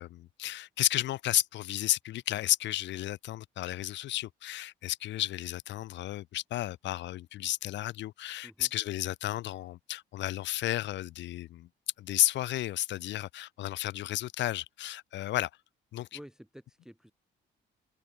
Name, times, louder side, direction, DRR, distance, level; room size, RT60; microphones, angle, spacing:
voice 1, 0.0-11.7 12.0-15.5 15.9-16.1, left 14 dB, 65° left, 0.4 m, -32 dB
voice 2, 16.1-17.1, equal, 5° right, 0.9 m, -50 dB
cardioid pair, 90°, 20 cm